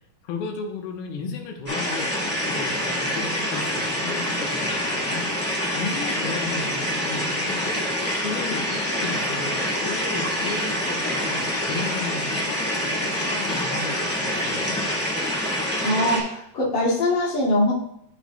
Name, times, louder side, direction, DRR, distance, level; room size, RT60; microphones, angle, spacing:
voice 1, 0.2-5.4 5.7-14.8, left 4 dB, 85° left, 2 dB, 2.8 m, -35 dB
sound 1, 1.7-16.2, equal, 15° left, 0.5 m, -26 dB
voice 2, 15.8-17.7, left 1 dB, 35° left, -7 dB, 2.1 m, -22 dB
13.0 x 5.0 x 2.2 m, 0.74 s
omnidirectional pair, 4.4 m